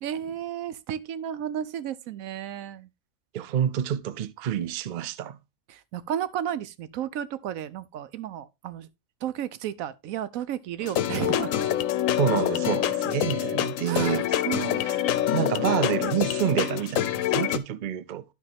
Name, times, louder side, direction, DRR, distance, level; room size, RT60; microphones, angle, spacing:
voice 1, 0.0-2.9 5.7-8.9 9.2-11.7 13.9-14.9, right 10 dB, 85° right, 1.1 m, -33 dB
voice 2, 3.3-5.4 12.1-14.4 14.8-15.0 15.3-18.2, right 10 dB, 55° right, 0.5 m, -28 dB
sound 1, 10.8-17.6, left 11 dB, 75° left, 1.0 m, -26 dB
12.0 x 4.5 x 3.3 m
omnidirectional pair, 1.4 m